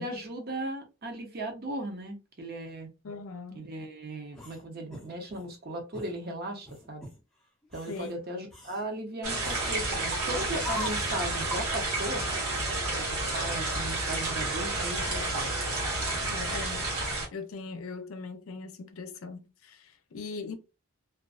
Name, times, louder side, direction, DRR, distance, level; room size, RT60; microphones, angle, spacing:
voice 1, 0.0-2.9 3.5-7.1 7.7-12.2 12.9-15.7, right 1 dB, 45° right, 0.7 m, -37 dB
voice 2, 3.0-3.7 7.9-8.2 16.2-16.8 17.3-20.6, left 4 dB, 75° left, 0.5 m, -40 dB
sound 1, 4.3-5.5 5.9-6.2 6.7-7.2 7.6-8.1 8.5-8.9 9.4-9.9 10.6-11.2, left 3 dB, ahead, 0.6 m, -42 dB
sound 2, 9.2-17.3, right 2 dB, 85° right, 1.1 m, -30 dB
2.4 x 2.2 x 2.3 m
head